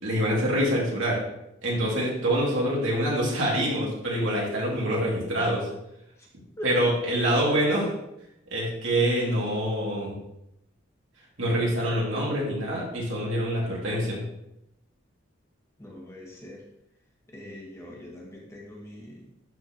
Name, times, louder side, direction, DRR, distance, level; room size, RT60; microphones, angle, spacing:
voice 1, 0.0-1.2 1.6-5.7 6.6-7.9 8.5-10.2 11.4-14.2, equal, 75° right, -4 dB, 2.6 m, -25 dB
voice 2, 15.8-16.6 17.3-19.3, left 1 dB, 15° left, -3 dB, 1.4 m, -42 dB
12.0 x 4.3 x 3.0 m, 0.81 s
head